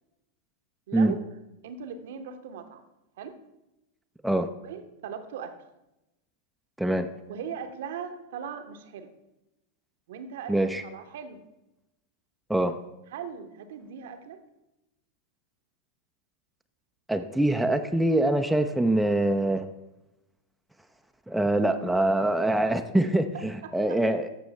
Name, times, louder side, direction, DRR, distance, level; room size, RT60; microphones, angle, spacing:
voice 1, 0.9-1.2 1.6-2.8 3.2-3.3 4.6-5.5 7.3-9.1 10.1-11.4 13.1-14.4 23.6-23.7, right 7 dB, 55° right, 8 dB, 0.8 m, -39 dB
voice 2, 6.8-7.1 10.5-10.8 12.5-12.8 17.1-19.7 21.3-24.3, right 1 dB, ahead, 6 dB, 0.5 m, -24 dB
14.0 x 6.1 x 3.3 m, 0.96 s
figure-of-eight pair, 90°, 0 cm